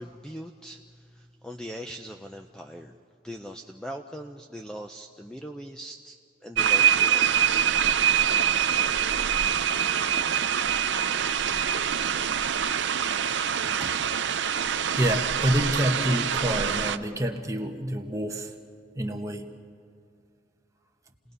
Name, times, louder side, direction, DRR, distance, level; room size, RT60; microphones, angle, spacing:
voice 1, 0.0-2.9 3.2-7.3 15.7-15.8, equal, 5° left, 3 dB, 0.5 m, -41 dB
sound 1, 6.6-17.0, right 8 dB, 75° right, 0.6 m, -25 dB
voice 2, 14.9-18.5 18.9-19.5, equal, 15° right, 3 dB, 1.2 m, -27 dB
29.5 x 19.0 x 5.5 m, 2.3 s
head